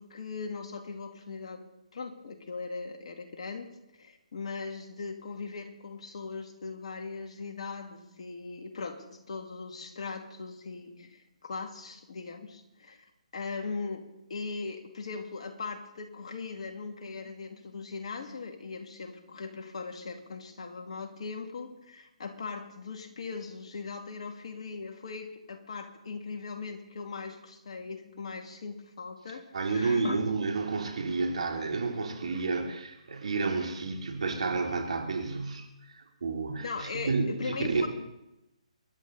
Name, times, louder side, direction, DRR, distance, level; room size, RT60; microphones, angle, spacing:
voice 1, 0.0-13.0 13.3-14.0 14.3-30.2 36.6-37.9, left 4 dB, 55° left, 5 dB, 2.4 m, -39 dB
voice 2, 29.5-37.8, right 4 dB, 60° right, 2 dB, 3.2 m, -31 dB
25.0 x 11.0 x 4.1 m, 0.89 s
figure-of-eight pair, 140°, 4 cm